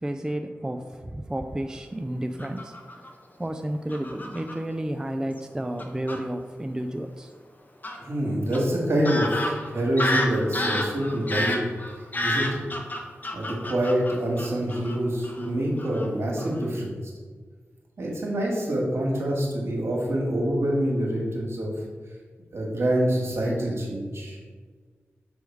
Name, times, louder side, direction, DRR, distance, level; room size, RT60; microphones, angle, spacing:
voice 1, 0.0-3.0 3.4-7.3, right 1 dB, 15° right, 6 dB, 0.3 m, -31 dB
Fowl / Bird vocalization bird call bird song, 2.4-3.1 3.9-4.6 5.4-5.5 5.8-6.2 7.8-8.0 8.5-8.6 9.1-15.0 15.2-15.5 15.8-16.1 16.4-16.6, left 1 dB, 40° left, 0.9 m, -30 dB
voice 2, 8.0-11.6 12.2-12.6 13.3-16.9 18.0-21.7 22.5-24.4, right 1 dB, 65° right, -2 dB, 1.8 m, -26 dB
6.1 x 3.5 x 4.6 m, 1.5 s
cardioid pair, 50°, 5 cm